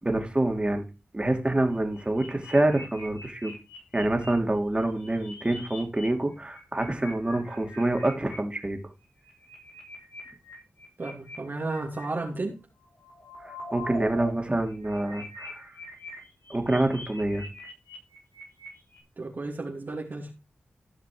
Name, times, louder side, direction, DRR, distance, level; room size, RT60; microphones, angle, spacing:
voice 1, 0.0-0.8 1.1-3.5 3.9-8.8 13.4-15.7 16.5-17.4, right 1 dB, 25° right, 4 dB, 2.9 m, -26 dB
sound 1, 1.7-4.3 4.8-6.0 6.3-8.4 9.0-12.0 12.8-14.3 14.6-19.0, left 1 dB, 85° left, 4.9 m, -43 dB
voice 2, 11.0-12.6 19.2-20.3, right 3 dB, 55° right, -2 dB, 2.8 m, -33 dB
15.0 x 5.8 x 4.7 m, 0.30 s
cardioid pair, 45°, 4 cm